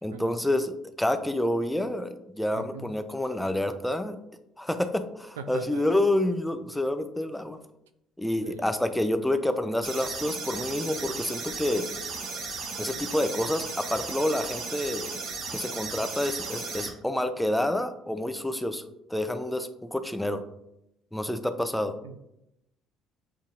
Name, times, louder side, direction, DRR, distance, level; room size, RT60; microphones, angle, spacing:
voice 1, 0.0-4.2 4.6-7.6 8.2-11.9 12.8-15.1 15.5-18.8 19.1-20.4 21.1-21.9, left 1 dB, 5° left, 9 dB, 0.5 m, -28 dB
voice 2, 2.6-2.9 5.4-5.9 8.4-8.6 22.0-22.2, right 6 dB, 90° right, 9 dB, 0.3 m, -40 dB
sound 1, 9.8-16.9, right 4 dB, 70° right, 0.9 m, -35 dB
7.6 x 2.7 x 2.5 m, 0.84 s
hypercardioid pair, 60°, 0 cm